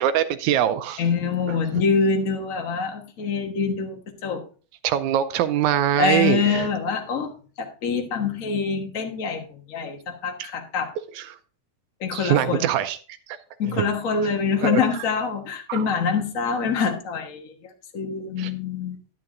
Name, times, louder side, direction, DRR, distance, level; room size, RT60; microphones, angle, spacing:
voice 1, 0.0-1.0 1.7-1.8 4.8-6.7 10.4-10.5 11.1-11.4 12.1-13.0 13.7-13.8 14.6-14.8 15.7-15.9 18.4-18.5, right 10 dB, 80° right, 10 dB, 1.9 m, -23 dB
voice 2, 1.0-4.4 6.0-10.9 12.0-12.7 13.6-17.5 17.9-19.0, left 5 dB, 50° left, 3 dB, 0.9 m, -25 dB
11.0 x 11.0 x 2.5 m, 0.39 s
omnidirectional pair, 3.6 m